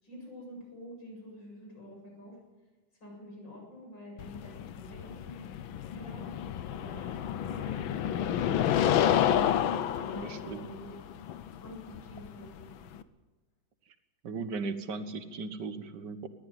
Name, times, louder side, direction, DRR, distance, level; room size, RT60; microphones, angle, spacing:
voice 1, 0.0-2.4 3.0-5.4 5.9-6.3 6.6-8.5 9.9-11.0 11.6-12.7, left 1 dB, 65° left, -1 dB, 8.6 m, -47 dB
sound 1, 4.2-13.0, left 10 dB, 90° left, 1.7 m, -30 dB
voice 2, 10.2-10.7 14.2-16.3, right 4 dB, 65° right, 10 dB, 1.9 m, -37 dB
20.0 x 14.5 x 9.3 m, 1.2 s
omnidirectional pair, 2.1 m